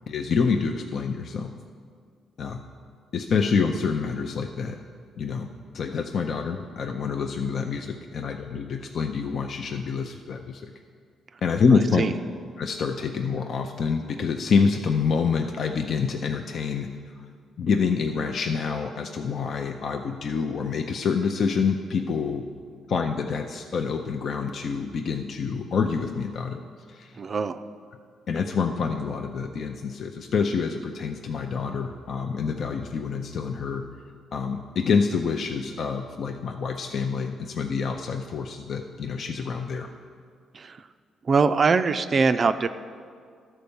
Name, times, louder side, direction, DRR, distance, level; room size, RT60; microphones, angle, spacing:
voice 1, 0.1-1.5 2.4-2.6 3.1-4.8 5.2-10.7 11.4-12.0 12.6-16.9 17.6-22.4 22.9-26.6 26.9-27.1 28.3-33.8 34.3-39.9, left 5 dB, 55° left, 4 dB, 0.5 m, -27 dB
voice 2, 11.7-12.1 27.2-27.6 40.5-40.9 41.2-42.7, right 4 dB, 40° right, 10 dB, 0.4 m, -23 dB
11.5 x 4.4 x 6.9 m, 2.1 s
cardioid pair, 90°, 0 cm